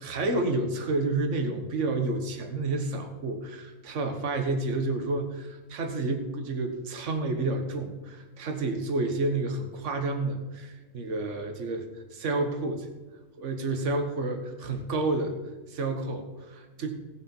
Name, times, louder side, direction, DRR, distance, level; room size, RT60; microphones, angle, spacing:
voice 1, 0.0-12.9 13.4-15.3 15.7-16.9, right 2 dB, 55° right, 6 dB, 1.7 m, -30 dB
18.5 x 6.6 x 4.6 m, 1.3 s
omnidirectional pair, 1.5 m